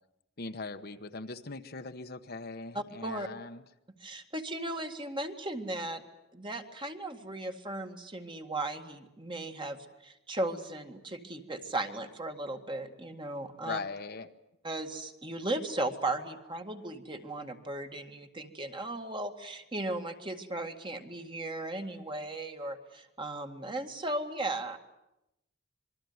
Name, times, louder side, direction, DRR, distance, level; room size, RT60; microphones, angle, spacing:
voice 1, 0.4-3.6 13.6-14.3, left 3 dB, 50° left, 8 dB, 1.2 m, -40 dB
voice 2, 2.7-3.3 4.0-6.0 6.3-13.8 14.6-24.8, right 2 dB, 25° right, 5 dB, 2.0 m, -36 dB
27.0 x 22.0 x 9.6 m, 0.88 s
head